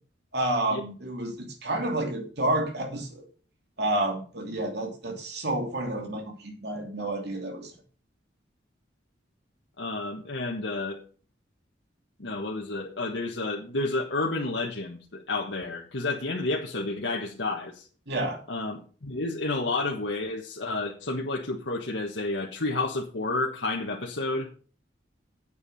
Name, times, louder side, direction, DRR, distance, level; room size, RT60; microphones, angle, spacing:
voice 1, 0.3-3.3 3.8-7.7 18.1-18.4, right 1 dB, 65° right, 3 dB, 2.8 m, -30 dB
voice 2, 9.8-11.0 12.2-17.9 18.5-24.5, left 2 dB, 80° left, -1 dB, 1.4 m, -30 dB
8.6 x 8.3 x 5.5 m, 0.40 s
head